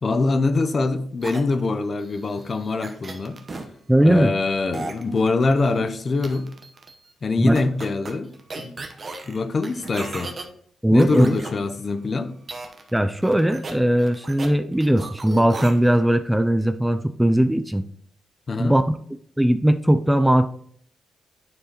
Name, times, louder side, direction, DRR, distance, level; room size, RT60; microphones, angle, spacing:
voice 1, 0.0-3.4 4.0-6.5 7.2-8.3 8.6-8.7 9.3-10.3 10.9-12.3 18.5-18.7, left 3 dB, 40° left, 0.6 m, -23 dB
sound 1, 1.2-3.7 4.7-5.9 6.2-6.9 7.6-10.4 11.0-11.5 12.5-13.0 13.2-14.5 14.8-16.0, right 3 dB, 35° right, 0.9 m, -36 dB
voice 2, 3.9-4.3 7.4-7.6 10.8-11.4 12.9-17.8 18.6-19.0 19.4-20.5, right 1 dB, 5° right, 0.3 m, -19 dB
9.7 x 4.5 x 2.9 m
cardioid pair, 100°, 0 cm